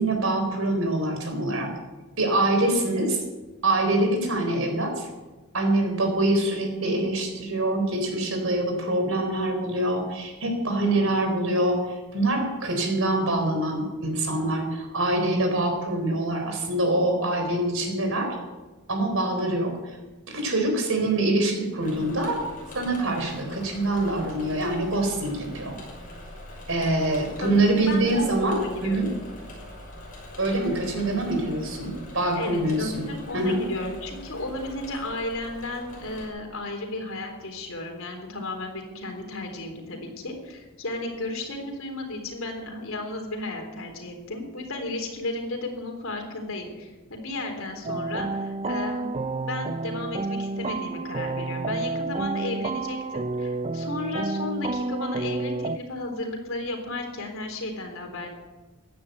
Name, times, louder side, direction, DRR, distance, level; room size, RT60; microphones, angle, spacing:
voice 1, 0.0-1.7 2.2-3.2 3.6-5.1 5.5-18.4 18.9-19.7 20.3-22.4 22.7-25.8 26.7-29.1 30.4-33.0 33.3-33.6, right 1 dB, 75° right, 4 dB, 4.1 m, -25 dB
Engine / Mechanisms, 21.8-36.3, left 1 dB, 40° left, 6.3 m, -43 dB
voice 2, 27.4-29.1 32.4-58.3, left 2 dB, 75° left, 3 dB, 3.5 m, -34 dB
sound 1, 47.8-55.8, right 3 dB, 30° right, 0.4 m, -30 dB
15.5 x 10.0 x 8.1 m, 1.2 s
head